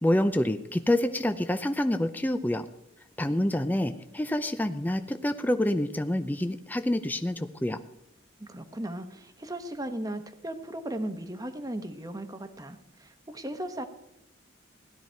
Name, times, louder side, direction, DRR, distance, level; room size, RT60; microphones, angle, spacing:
voice 1, 0.0-2.7 3.2-7.8, left 1 dB, 10° left, 9 dB, 0.5 m, -27 dB
voice 2, 8.4-13.8, right 1 dB, 20° right, 7 dB, 1.0 m, -37 dB
17.0 x 12.0 x 4.5 m, 0.80 s
head